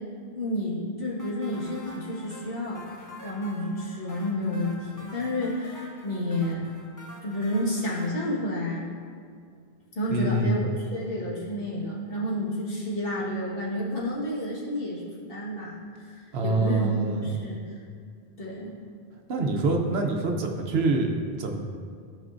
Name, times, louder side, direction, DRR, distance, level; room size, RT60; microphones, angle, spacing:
voice 1, 0.3-2.8 3.2-6.7 7.2-8.8 10.0-17.0 17.2-17.7 18.4-18.7, left 1 dB, 65° left, -6 dB, 1.7 m, -30 dB
sound 1, 1.2-8.1, left 1 dB, 20° left, 0.8 m, -46 dB
voice 2, 10.1-10.6 16.3-17.3 19.3-21.6, right 3 dB, 80° right, 2 dB, 1.1 m, -25 dB
14.5 x 5.2 x 2.6 m, 2.2 s
omnidirectional pair, 1.1 m